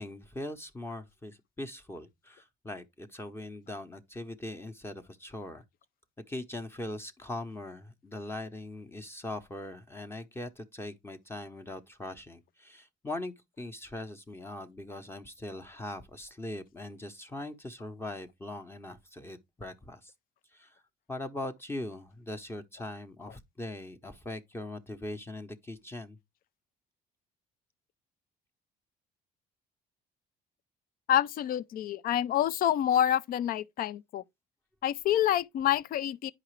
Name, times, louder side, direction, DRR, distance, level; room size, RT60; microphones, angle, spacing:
voice 1, 0.0-5.6 6.3-20.1 20.5-20.8 21.1-26.2, left 1 dB, 15° left, 0.8 m, -41 dB
voice 2, 31.1-34.2 34.8-36.3, left 11 dB, 60° left, 0.5 m, -27 dB
9.7 x 4.9 x 3.1 m
cardioid pair, 110°, 17 cm